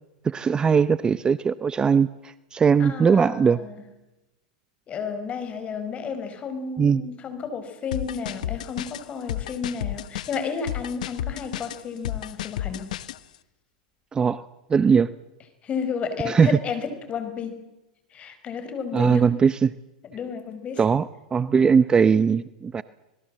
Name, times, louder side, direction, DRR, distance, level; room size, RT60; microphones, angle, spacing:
voice 1, 0.2-3.6 6.8-7.0 14.1-14.4 14.7-15.1 16.3-16.6 18.9-19.7 20.8-22.8, right 6 dB, 20° right, 16 dB, 0.7 m, -20 dB
voice 2, 2.8-3.8 4.9-12.9 15.6-17.6 18.1-19.2 20.0-20.8, left 6 dB, 30° left, 10 dB, 4.9 m, -32 dB
sound 1, 7.9-13.2, left 12 dB, 75° left, 1.2 m, -32 dB
26.5 x 20.0 x 7.7 m, 1.0 s
hypercardioid pair, 110°, 4 cm